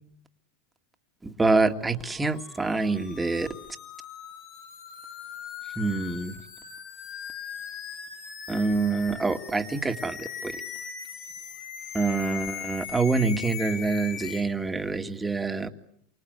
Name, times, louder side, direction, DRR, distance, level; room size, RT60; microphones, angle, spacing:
voice 1, 1.4-3.5 5.8-6.3 8.5-10.1 11.9-15.7, right 3 dB, 10° right, 6 dB, 2.2 m, -26 dB
sound 1, 2.2-14.4, left 8 dB, 60° left, 6.4 m, -40 dB
28.0 x 24.5 x 8.2 m, 0.68 s
supercardioid pair, 120°, 0 cm